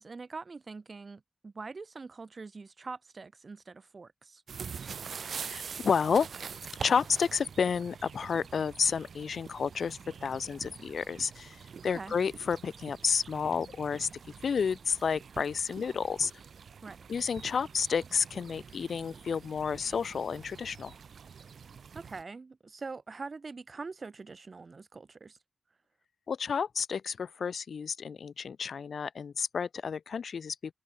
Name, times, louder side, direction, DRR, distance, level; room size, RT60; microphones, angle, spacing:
voice 1, 0.0-4.4 11.8-12.1 16.8-17.0 21.9-25.4, right 4 dB, 45° right, 0.6 m, -44 dB
sound 1, 4.5-22.2, right 6 dB, 80° right, 0.7 m, -45 dB
voice 2, 5.4-6.3 6.8-14.1 14.4-16.3 17.1-20.9 26.3-30.6, left 6 dB, 80° left, 0.5 m, -31 dB
wide cardioid pair, 130°, 0 cm